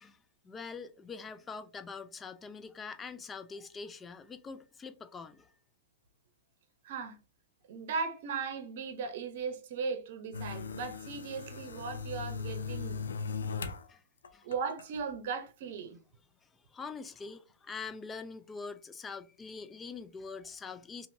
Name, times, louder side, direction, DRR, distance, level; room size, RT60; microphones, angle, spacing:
voice 1, 0.0-5.5 13.9-14.0 14.3-14.5 16.4-21.1, left 5 dB, 15° left, 0.3 m, -44 dB
voice 2, 6.8-7.2 7.7-13.3 14.4-16.0, right 5 dB, 55° right, 0.8 m, -37 dB
sound 1, 10.3-13.8 14.2-15.0, left 5 dB, 90° left, 0.5 m, -38 dB
2.9 x 2.5 x 2.6 m
hypercardioid pair, 135°, 0 cm